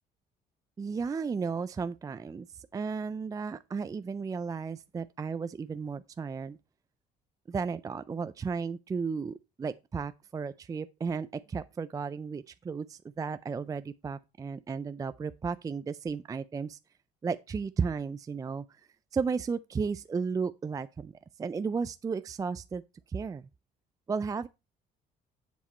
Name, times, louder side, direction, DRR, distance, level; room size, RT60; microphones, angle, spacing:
voice 1, 0.8-6.6 7.5-16.8 17.2-21.1 21.4-22.8 23.1-23.5 24.1-24.5, right 5 dB, 20° right, 0.4 m, -34 dB
7.3 x 7.2 x 4.2 m
cardioid pair, 110°, 17 cm